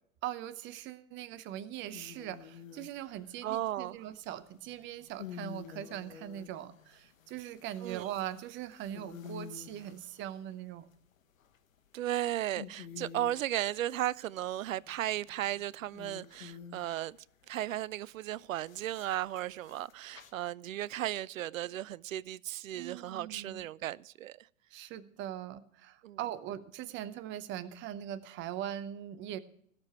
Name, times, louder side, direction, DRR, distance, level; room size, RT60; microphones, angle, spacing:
voice 1, 0.2-10.9 22.7-23.7 24.7-29.4, right 11 dB, 30° right, 0.8 m, -41 dB
sound 1, 1.9-3.3 4.7-10.5 11.2-11.8 12.2-12.3 12.6-13.5 14.8-17.2 18.6-20.3, left 7 dB, 75° left, 1.3 m, -49 dB
voice 2, 3.4-4.0 7.8-8.1 11.9-17.2 17.5-24.5 26.0-26.2, right 13 dB, 75° right, 0.5 m, -35 dB
16.0 x 6.8 x 5.9 m
hypercardioid pair, 110°, 40 cm